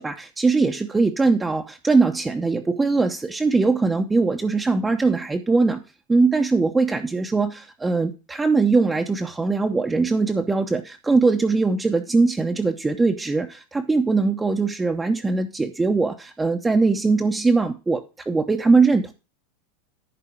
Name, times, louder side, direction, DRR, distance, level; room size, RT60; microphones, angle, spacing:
voice 1, 0.0-5.8 6.1-18.0 18.3-19.1, right 3 dB, 10° right, 3 dB, 0.8 m, -21 dB
11.0 x 4.1 x 5.6 m, 0.30 s
supercardioid pair, 125°, 0 cm